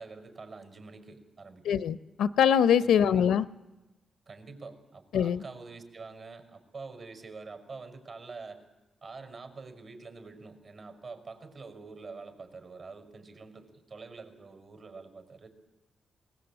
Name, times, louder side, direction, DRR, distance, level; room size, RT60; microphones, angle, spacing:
voice 1, 0.0-1.8 2.8-3.2 4.3-8.6 9.0-15.5, right 4 dB, 65° right, 6 dB, 5.7 m, -46 dB
voice 2, 1.6-3.4 5.1-5.4, left 8 dB, 80° left, 15 dB, 0.7 m, -23 dB
20.5 x 19.5 x 8.9 m, 1.1 s
hypercardioid pair, 40°, 0 cm